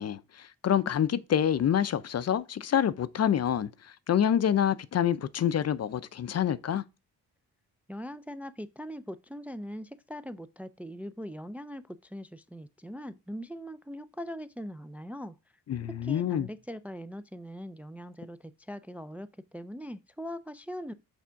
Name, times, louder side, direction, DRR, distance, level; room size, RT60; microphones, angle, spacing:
voice 1, 0.0-6.8 15.7-16.5, left 9 dB, 45° left, 0.5 m, -27 dB
voice 2, 7.9-15.4 15.9-20.9, equal, 5° right, 0.4 m, -41 dB
6.1 x 3.5 x 5.6 m
cardioid pair, 80°, 35 cm